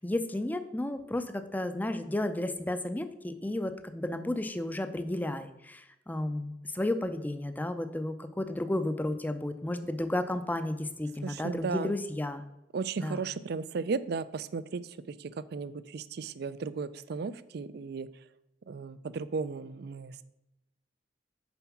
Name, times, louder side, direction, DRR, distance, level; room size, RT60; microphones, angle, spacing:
voice 1, 0.0-12.4 13.0-13.2, left 1 dB, 10° left, 9 dB, 0.5 m, -33 dB
voice 2, 11.2-11.9 12.7-18.3 18.7-20.2, right 4 dB, 60° right, 16 dB, 0.4 m, -35 dB
7.0 x 4.6 x 6.0 m, 0.92 s
head